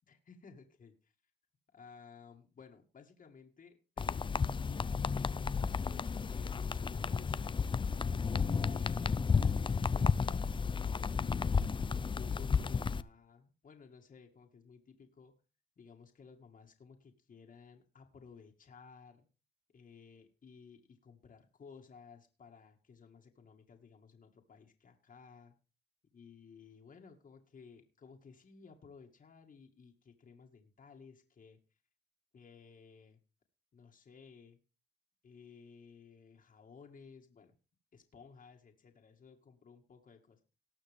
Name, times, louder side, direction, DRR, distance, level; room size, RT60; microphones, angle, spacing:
voice 1, 0.1-1.1 1.7-7.9 8.7-11.0 11.9-15.3 15.8-19.3 19.7-25.5 26.1-31.6 32.3-33.2 33.7-34.6 35.2-37.5 37.9-40.4, left 5 dB, 45° left, 2 dB, 2.1 m, -56 dB
sound 1, 4.0-13.0, left 5 dB, 25° left, 0.5 m, -32 dB
19.0 x 6.4 x 3.6 m, 0.32 s
cardioid pair, 90°, 20 cm